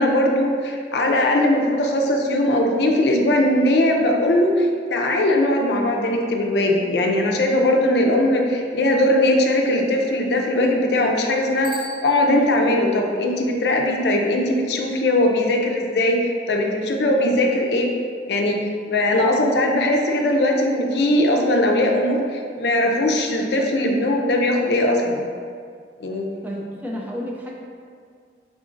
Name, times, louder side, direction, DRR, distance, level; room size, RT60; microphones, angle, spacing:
voice 1, 0.0-17.9 18.3-25.2 26.0-26.3, left 1 dB, 70° left, 1 dB, 0.5 m, -20 dB
Bicycle bell, 11.6-12.9, right 1 dB, 65° right, 0.8 m, -40 dB
voice 2, 26.4-27.5, equal, 10° right, -3 dB, 0.4 m, -31 dB
4.9 x 3.6 x 2.5 m, 2.1 s
head